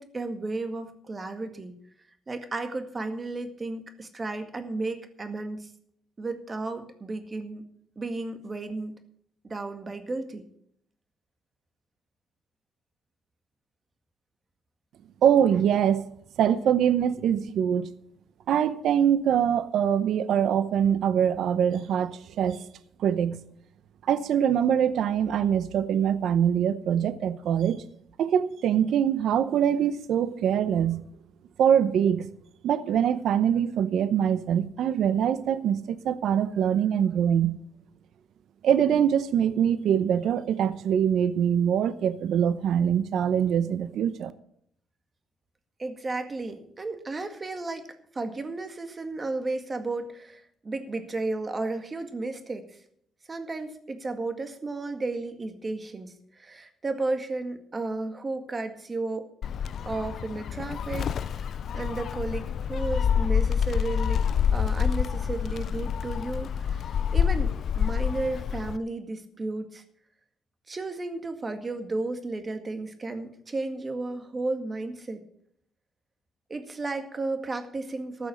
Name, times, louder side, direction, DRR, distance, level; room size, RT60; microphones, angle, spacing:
voice 1, 0.0-1.8 2.3-5.7 6.2-7.6 8.0-8.9 9.4-10.5 45.8-47.9 48.1-52.8 53.3-59.3 59.9-64.2 64.5-69.8 70.7-75.2 76.5-78.3, right 2 dB, 30° right, 1.9 m, -33 dB
voice 2, 15.2-16.0 16.4-17.9 18.5-22.6 23.0-23.4 24.1-27.8 28.2-31.0 31.6-32.3 32.6-37.6 38.6-44.3, right 9 dB, 75° right, 0.8 m, -23 dB
Gull seagull, 59.4-68.8, left 7 dB, 60° left, 0.4 m, -27 dB
14.5 x 6.2 x 8.6 m
cardioid pair, 90°, 0 cm